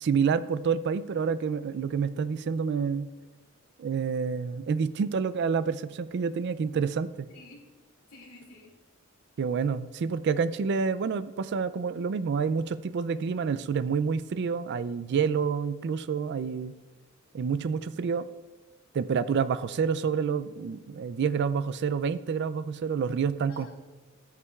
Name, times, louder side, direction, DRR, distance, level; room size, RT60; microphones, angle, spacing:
voice 1, 0.0-3.1 3.8-7.3 9.4-16.7 17.3-18.3 18.9-23.7, right 6 dB, 55° right, 15 dB, 0.3 m, -28 dB
voice 2, 7.3-7.7 8.1-8.7 23.5-23.7, left 2 dB, 85° left, -3 dB, 2.4 m, -49 dB
13.0 x 9.5 x 2.4 m, 1.3 s
head